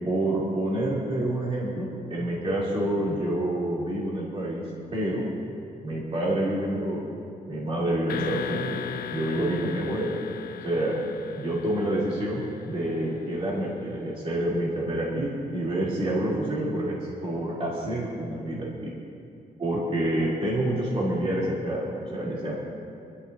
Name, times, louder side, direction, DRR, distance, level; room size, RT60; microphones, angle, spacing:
voice 1, 0.1-4.6 4.9-5.3 5.8-7.0 7.5-8.8 9.1-10.2 10.6-11.0 11.3-17.0 17.2-18.9 19.6-22.6, right 1 dB, 40° right, -7 dB, 3.7 m, -28 dB
sound 1, 8.1-13.0, left 8 dB, 70° left, 0.6 m, -37 dB
25.5 x 14.0 x 2.9 m, 2.5 s
wide cardioid pair, 175°, 16 cm